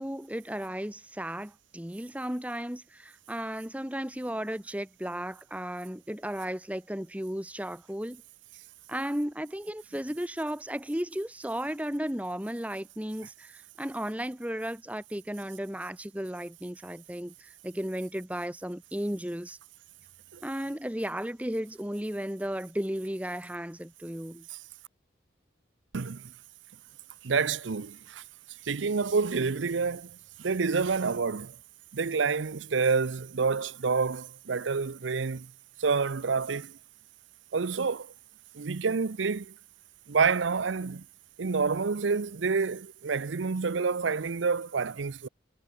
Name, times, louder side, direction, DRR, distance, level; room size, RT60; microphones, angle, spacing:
voice 1, 0.0-8.2 8.9-19.6 20.4-24.5, equal, 10° right, 1.9 m, -34 dB
voice 2, 25.9-26.3 27.2-28.2 28.6-31.6 31.9-35.5 35.8-36.8 37.5-38.1 38.5-39.5 40.1-41.1 41.4-45.3, right 5 dB, 80° right, 0.7 m, -28 dB
head